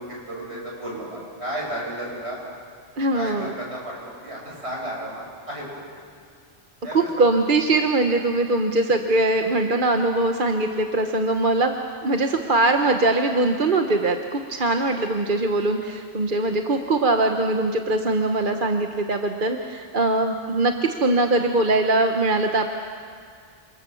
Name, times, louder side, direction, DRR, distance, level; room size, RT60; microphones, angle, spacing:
voice 1, 0.0-2.4 3.1-5.7 6.8-7.1, right 1 dB, 65° right, -3 dB, 7.5 m, -33 dB
voice 2, 3.0-3.5 6.9-11.7 12.0-20.7 21.0-22.7, right 2 dB, 45° right, 4 dB, 1.2 m, -21 dB
28.0 x 26.0 x 7.0 m, 2.2 s
omnidirectional pair, 1.2 m